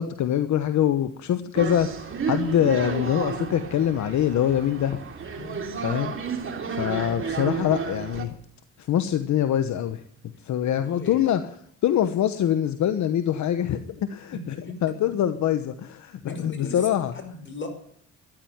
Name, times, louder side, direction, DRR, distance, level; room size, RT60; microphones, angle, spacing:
voice 1, 0.0-5.0 5.8-6.2 6.7-8.3 8.8-10.0 10.4-11.4 11.8-14.5 14.8-17.1, left 10 dB, 70° left, 10 dB, 1.1 m, -24 dB
sound 1, 1.6-8.2, right 5 dB, 45° right, 3.2 m, -31 dB
voice 2, 10.8-11.3 14.6-14.8 16.2-16.9 17.1-17.7, left 2 dB, 40° left, 6 dB, 5.3 m, -38 dB
13.5 x 10.5 x 9.4 m, 0.64 s
cardioid pair, 90°, 30 cm